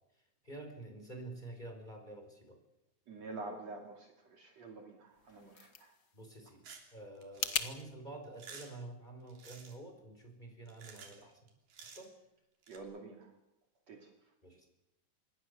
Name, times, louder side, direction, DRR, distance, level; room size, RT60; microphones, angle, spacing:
voice 1, 0.4-2.6 6.1-6.6 6.9-11.4 11.8-12.1 14.4-14.7, right 2 dB, 10° left, 4 dB, 5.2 m, -48 dB
voice 2, 3.1-5.9 12.7-13.3 13.9-14.1, right 2 dB, 50° right, 2 dB, 3.6 m, -47 dB
sound 1, 5.1-7.7, left 7 dB, 80° left, 0.8 m, -40 dB
sound 2, 6.6-6.9 7.2-7.8 8.2-8.8 9.3-9.8 10.7-11.2 11.5-12.1 12.6-12.8, right 6 dB, 90° right, 4.9 m, -52 dB
26.5 x 21.5 x 7.0 m, 0.88 s
omnidirectional pair, 3.9 m